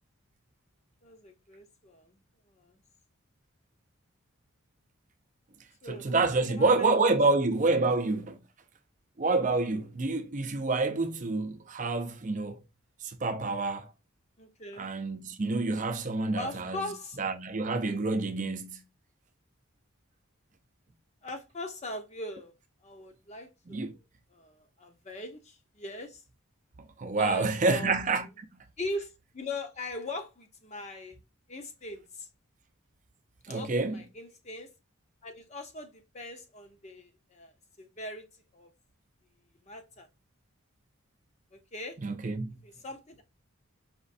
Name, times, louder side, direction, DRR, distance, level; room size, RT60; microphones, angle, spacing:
voice 1, 1.0-2.2 2.5-2.8 5.8-6.1 6.4-6.9 7.8-8.0 14.4-14.9 16.4-17.2 21.2-22.5 22.8-24.0 24.3-26.2 27.2-27.9 28.8-31.2 31.5-32.3 33.5-34.7 35.2-37.5 37.8-38.3 38.5-38.7 39.6-40.1 41.5-42.0 42.6-43.2, left 2 dB, 30° left, 0.8 m, -40 dB
voice 2, 5.9-8.4 9.2-12.6 13.0-13.9 14.8-16.9 17.2-18.8 23.7-23.9 27.0-28.6 33.4-34.0 42.0-42.6, right 3 dB, 35° right, 0.5 m, -28 dB
5.1 x 3.1 x 2.5 m
head